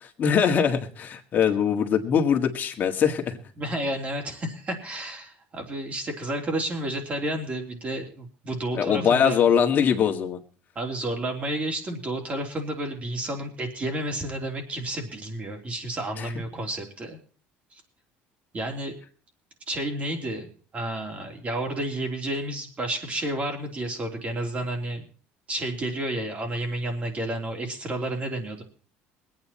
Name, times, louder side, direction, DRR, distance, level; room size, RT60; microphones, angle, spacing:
voice 1, 0.0-3.4 8.7-10.4 16.2-16.3, left 7 dB, 40° left, 4 dB, 1.9 m, -22 dB
voice 2, 3.6-9.5 10.7-17.2 18.5-19.0 19.7-25.1 25.5-28.6, right 1 dB, 30° right, 3 dB, 3.2 m, -31 dB
21.5 x 9.0 x 4.3 m, 0.39 s
supercardioid pair, 110°, 4 cm